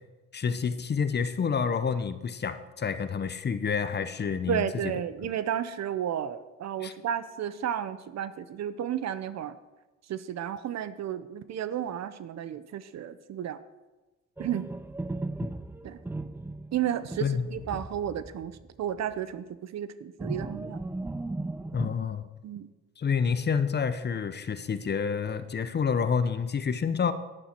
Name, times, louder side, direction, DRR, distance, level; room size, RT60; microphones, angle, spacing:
voice 1, 0.3-4.9 5.2-5.3 6.8-6.9 17.2-17.5 21.7-22.3 23.0-27.1, left 6 dB, 35° left, 12 dB, 0.7 m, -28 dB
voice 2, 4.5-9.6 10.1-13.6 14.4-14.7 15.8-16.0 16.7-18.5 18.8-20.8 22.4-22.7, right 9 dB, 60° right, 14 dB, 0.7 m, -32 dB
sound 1, 14.4-18.7 19.0-19.1 20.2-21.9, right 2 dB, 5° right, 0.4 m, -37 dB
11.0 x 9.9 x 4.4 m, 1.1 s
cardioid pair, 90°, 30 cm